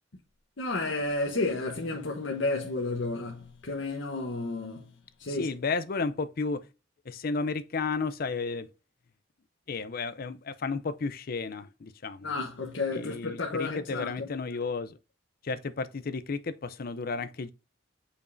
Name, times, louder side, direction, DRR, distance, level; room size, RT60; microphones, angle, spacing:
voice 1, 0.6-4.9 5.2-5.5 12.2-14.3, left 2 dB, 65° left, 1.0 m, -32 dB
voice 2, 5.3-6.7 7.1-8.7 9.7-12.3 12.9-15.0 15.4-17.5, left 4 dB, 45° left, 0.5 m, -33 dB
7.0 x 5.2 x 2.6 m
head